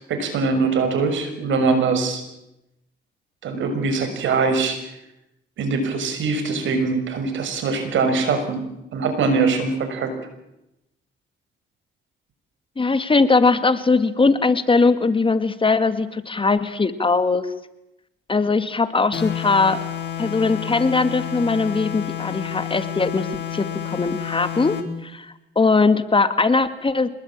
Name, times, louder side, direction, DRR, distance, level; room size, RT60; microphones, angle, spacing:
voice 1, 0.0-2.2 3.4-4.8 5.6-8.6 8.9-10.1, right 4 dB, 75° right, 8 dB, 6.2 m, -22 dB
voice 2, 12.8-17.5 18.3-19.8 20.2-24.8 25.0-27.1, left 4 dB, 25° left, 11 dB, 2.0 m, -20 dB
sound 1, 19.1-24.9, left 10 dB, 60° left, 4.0 m, -30 dB
26.5 x 20.5 x 8.9 m, 0.90 s
cardioid pair, 90°, 20 cm